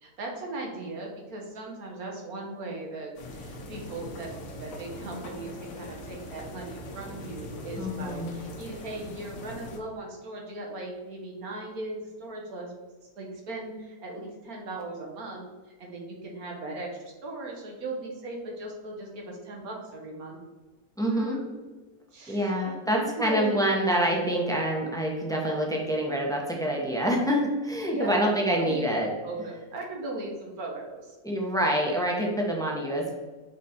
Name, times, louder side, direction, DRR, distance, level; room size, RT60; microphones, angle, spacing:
voice 1, 0.0-4.3 4.6-12.7 13.2-20.4 21.1-21.6 22.1-23.6 27.9-28.9 29.2-31.4, right 2 dB, 80° right, 0 dB, 1.8 m, -38 dB
sound 1, 3.1-9.8, left 1 dB, 70° left, 1.3 m, -41 dB
voice 2, 7.8-8.4 21.0-21.5 22.3-29.1 31.2-33.1, equal, 5° left, -1 dB, 0.9 m, -26 dB
6.0 x 4.1 x 4.3 m, 1.2 s
omnidirectional pair, 1.5 m